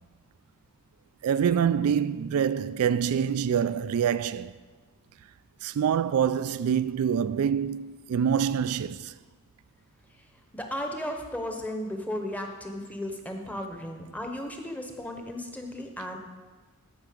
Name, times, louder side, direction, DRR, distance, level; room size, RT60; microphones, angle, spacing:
voice 1, 1.2-4.5 5.6-9.1, right 8 dB, 75° right, 0.3 m, -26 dB
voice 2, 10.5-16.2, left 1 dB, 5° left, 0.9 m, -35 dB
13.5 x 5.8 x 5.2 m
head